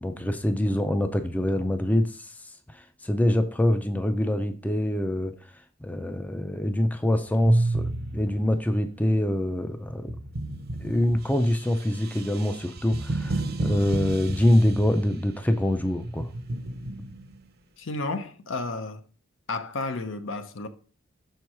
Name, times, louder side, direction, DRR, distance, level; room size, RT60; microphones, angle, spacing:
voice 1, 0.0-2.3 2.7-5.3 5.8-10.2 10.8-16.3, left 1 dB, 10° left, 0.4 m, -25 dB
sound 1, 7.5-8.7 9.9-15.3 16.0-17.4, right 2 dB, 50° right, 0.7 m, -31 dB
voice 2, 17.8-19.0 19.5-20.7, left 3 dB, 65° left, 0.7 m, -32 dB
6.2 x 4.6 x 4.6 m
head